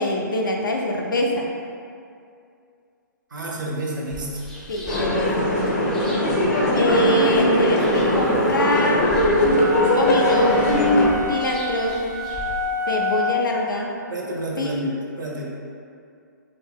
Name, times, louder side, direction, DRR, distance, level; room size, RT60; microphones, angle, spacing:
voice 1, 0.0-1.5 4.7-5.5 6.7-9.1 10.0-10.5 11.3-12.0 12.9-13.9 14.6-14.8, equal, 85° left, 0 dB, 0.5 m, -24 dB
voice 2, 3.3-4.4 14.1-15.5, right 2 dB, 75° right, -2 dB, 0.6 m, -30 dB
sound 1, 4.1-12.7, right 1 dB, 5° left, 0.3 m, -39 dB
sound 2, 4.9-11.1, left 1 dB, 40° left, 0.6 m, -20 dB
sound 3, 9.3-13.6, left 5 dB, 90° right, 1.2 m, -28 dB
2.4 x 2.2 x 3.4 m, 2.4 s
hypercardioid pair, 130°, 11 cm